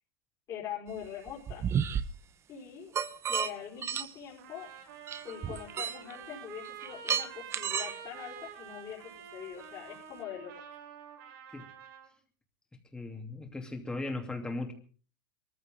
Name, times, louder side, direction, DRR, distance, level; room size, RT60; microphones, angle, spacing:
voice 1, 0.5-1.7 2.5-2.9 3.2-4.7 5.2-10.8, left 9 dB, 35° left, -4 dB, 4.6 m, -43 dB
sound 1, 1.0-2.0 2.9-3.5 3.8-4.1 5.1-6.2 6.6-8.0, right 8 dB, 25° right, 0.9 m, -32 dB
Trumpet, 4.4-12.1, right 7 dB, 75° right, 5.0 m, -48 dB
voice 2, 12.9-14.7, left 2 dB, 5° left, 4 dB, 2.8 m, -37 dB
24.0 x 14.5 x 3.8 m, 0.40 s
supercardioid pair, 140°, 11 cm